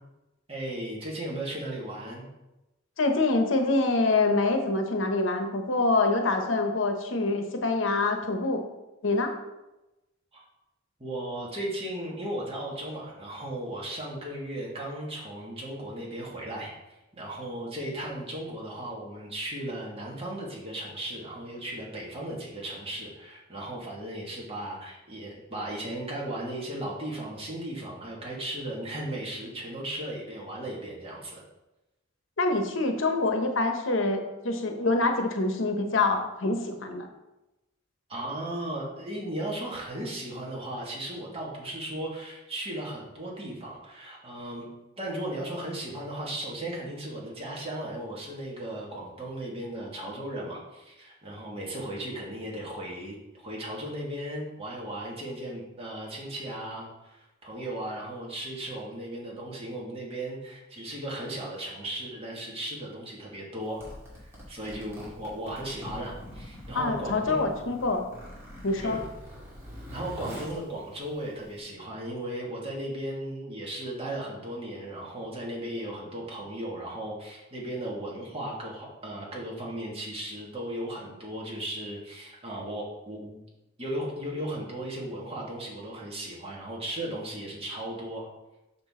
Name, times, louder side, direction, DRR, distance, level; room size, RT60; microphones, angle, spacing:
voice 1, 0.5-2.3 10.3-10.5 11.0-31.4 38.1-44.7 45.0-63.8 64.2-67.5 68.8-69.1 69.9-83.4 83.8-88.3, right 1 dB, 30° right, -3 dB, 1.9 m, -36 dB
voice 2, 3.0-8.6 9.0-9.3 32.4-37.1 66.7-68.0 68.6-69.0, left 3 dB, 70° left, 5 dB, 0.9 m, -25 dB
Zipper (clothing), 63.6-71.6, equal, 15° right, 2.3 m, -44 dB
6.5 x 6.1 x 3.7 m, 0.99 s
head